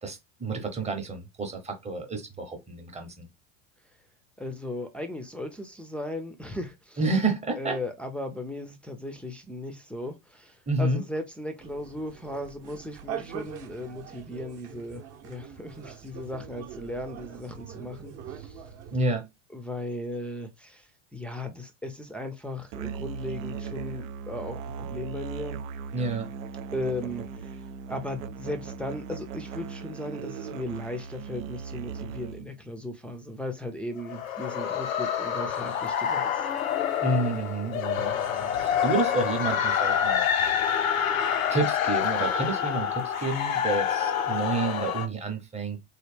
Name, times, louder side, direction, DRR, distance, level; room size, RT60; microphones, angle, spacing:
voice 1, 0.0-3.3 7.0-7.8 10.7-11.0 18.9-19.3 25.9-26.3 37.0-40.2 41.5-45.8, right 3 dB, 15° right, 0.9 m, -29 dB
voice 2, 4.4-7.0 7.6-18.6 19.5-25.6 26.7-27.6 27.9-36.5, left 1 dB, 5° left, 0.5 m, -37 dB
sound 1, 11.6-19.1, right 8 dB, 40° right, 0.8 m, -42 dB
Musical instrument, 22.7-32.5, right 6 dB, 80° right, 0.5 m, -38 dB
sound 2, 34.0-45.1, left 8 dB, 90° left, 0.6 m, -27 dB
3.1 x 2.1 x 3.3 m
hypercardioid pair, 95°, 39 cm